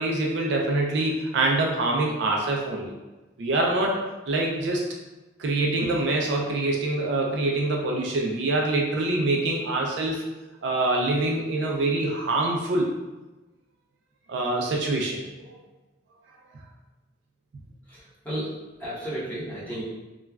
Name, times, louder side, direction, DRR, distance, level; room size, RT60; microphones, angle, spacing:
voice 1, 0.0-2.9 3.4-4.8 5.4-10.2 10.6-12.9 14.3-15.6, right 2 dB, 60° right, -1 dB, 0.3 m, -25 dB
voice 2, 17.9-19.8, right 1 dB, 10° left, -11 dB, 0.9 m, -33 dB
3.1 x 2.3 x 2.2 m, 1.1 s
head